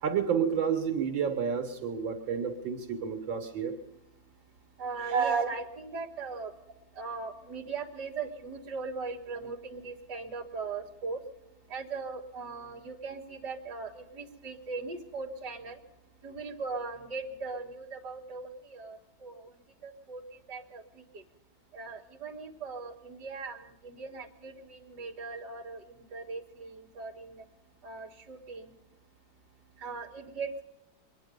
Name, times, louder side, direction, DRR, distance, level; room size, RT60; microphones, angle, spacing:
voice 1, 0.0-3.8 5.0-5.5, right 7 dB, 75° right, 5 dB, 2.3 m, -29 dB
voice 2, 4.8-6.5 6.9-11.2 11.7-15.8 16.2-19.5 19.8-21.2 21.7-27.5 27.8-28.7 29.8-30.6, right 4 dB, 55° right, -2 dB, 2.3 m, -39 dB
23.5 x 10.5 x 5.2 m, 0.96 s
omnidirectional pair, 2.1 m